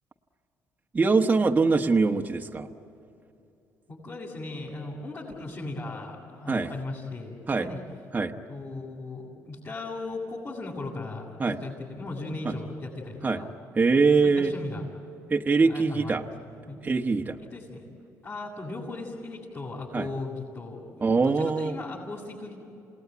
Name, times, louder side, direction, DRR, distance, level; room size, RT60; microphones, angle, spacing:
voice 1, 0.9-2.7 6.5-6.7 7.5-7.7 8.1-8.3 11.4-11.6 12.4-12.5 13.2-13.4 13.7-14.5 15.3-16.2 16.8-17.4 19.9-20.1 21.0-21.8, right 4 dB, 25° right, 2 dB, 1.3 m, -23 dB
voice 2, 3.9-7.8 8.5-13.5 13.9-14.8 15.7-16.3 16.7-16.8 17.5-17.8 18.2-20.8 21.2-22.6, left 2 dB, 40° left, -6 dB, 7.5 m, -37 dB
28.0 x 19.0 x 9.5 m, 2.7 s
cardioid pair, 90°, 7 cm